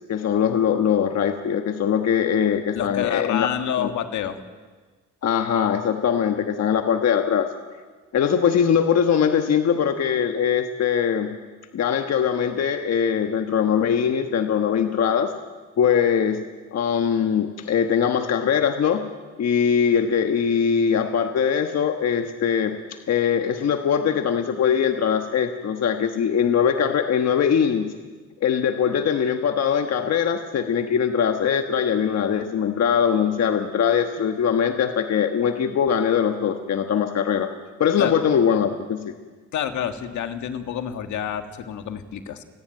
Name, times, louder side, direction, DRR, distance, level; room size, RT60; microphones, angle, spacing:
voice 1, 0.1-3.5 3.8-3.9 5.2-7.5 8.1-11.4 11.7-15.3 15.8-16.4 16.7-19.1 19.4-22.8 23.1-27.9 28.4-37.5 37.8-39.1, left 7 dB, 60° left, 6 dB, 1.3 m, -21 dB
voice 2, 2.7-4.4 38.0-38.1 39.5-42.4, left 9 dB, 75° left, 7 dB, 1.7 m, -28 dB
29.5 x 10.5 x 9.1 m, 1.4 s
cardioid pair, 90°, 30 cm